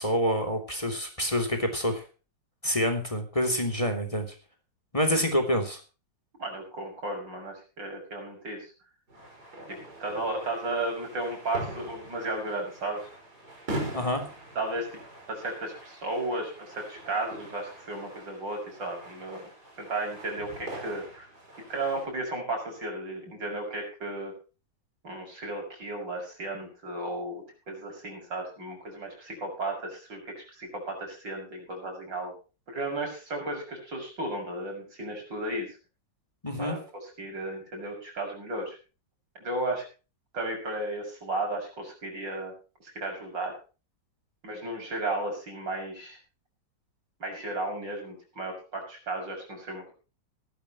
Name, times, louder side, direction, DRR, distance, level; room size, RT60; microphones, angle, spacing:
voice 1, 0.0-2.0 2.6-4.3 4.9-5.8 13.9-14.3 36.4-36.8, equal, 15° left, 6 dB, 3.2 m, -27 dB
voice 2, 6.4-8.7 9.7-13.1 14.6-15.0 15.3-19.5 19.8-21.3 21.7-24.3 25.0-32.3 32.7-35.7 36.6-36.8 37.2-38.8 39.4-39.8 40.3-42.5 42.8-43.5 44.4-46.2 47.2-49.9, right 2 dB, 80° right, 2 dB, 7.3 m, -34 dB
sound 1, 9.1-22.1, right 1 dB, 60° right, 6.3 m, -42 dB
17.5 x 15.0 x 3.1 m, 0.34 s
omnidirectional pair, 1.9 m